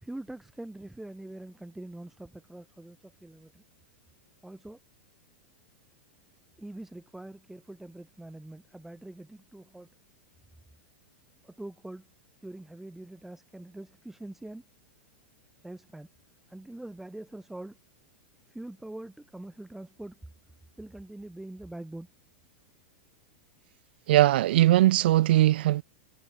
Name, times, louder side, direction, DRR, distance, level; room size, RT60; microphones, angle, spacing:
voice 1, 0.0-3.6 4.4-4.8 6.6-9.9 11.4-12.0 12.4-14.6 15.6-16.1 16.5-17.8 18.5-20.1 20.8-22.1, right 1 dB, 5° right, 4.0 m, -43 dB
voice 2, 24.1-25.8, right 14 dB, 70° right, 0.6 m, -20 dB
hypercardioid pair, 115°, 6 cm